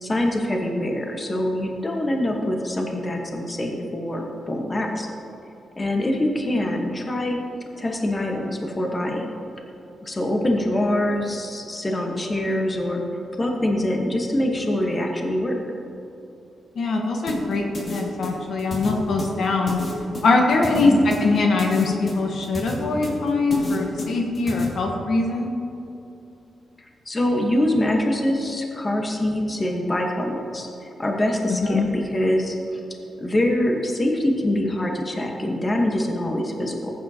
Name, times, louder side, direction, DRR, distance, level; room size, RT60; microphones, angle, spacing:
voice 1, 0.0-5.1 5.8-7.4 7.8-9.3 10.0-13.0 13.4-15.6 20.7-21.0 27.1-32.8 33.2-36.9, left 1 dB, 25° left, 1 dB, 1.2 m, -24 dB
voice 2, 16.7-19.8 20.2-25.5 31.5-31.9, left 3 dB, 65° left, 1 dB, 1.2 m, -22 dB
sound 1, 17.3-24.6, left 1 dB, 50° left, 2.4 m, -32 dB
14.5 x 8.7 x 2.9 m, 2.8 s
cardioid pair, 95°, 0 cm